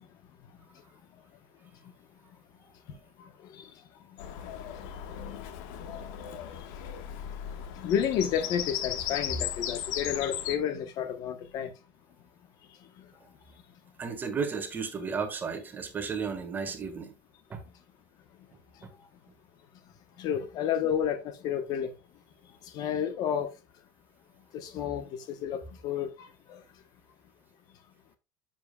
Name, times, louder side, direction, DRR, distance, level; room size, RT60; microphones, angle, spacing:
voice 1, 3.2-3.7 7.8-11.7 20.2-21.9 22.7-23.5 24.5-26.6, left 9 dB, 40° left, 1.0 m, -31 dB
Bird vocalization bird call bird song, 4.2-10.6, left 10 dB, 60° left, 1.3 m, -37 dB
voice 2, 14.0-17.1 17.5-17.6, right 5 dB, 20° right, 1.5 m, -33 dB
10.0 x 7.3 x 2.3 m
supercardioid pair, 155°, 10 cm